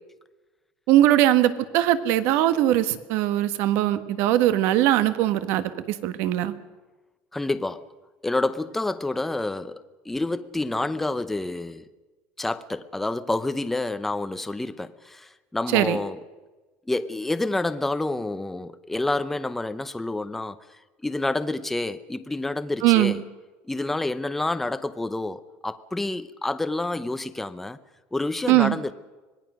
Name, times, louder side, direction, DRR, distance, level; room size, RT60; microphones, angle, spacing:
voice 1, 0.9-6.5 15.7-16.0 22.8-23.1 28.5-28.8, right 13 dB, 60° right, 1.4 m, -20 dB
voice 2, 7.3-7.8 8.2-11.8 12.4-16.2 16.9-20.6 21.0-23.2 23.7-27.8 28.1-28.9, left 2 dB, 5° left, 0.7 m, -28 dB
25.5 x 20.0 x 6.3 m
cardioid pair, 170°, 4 cm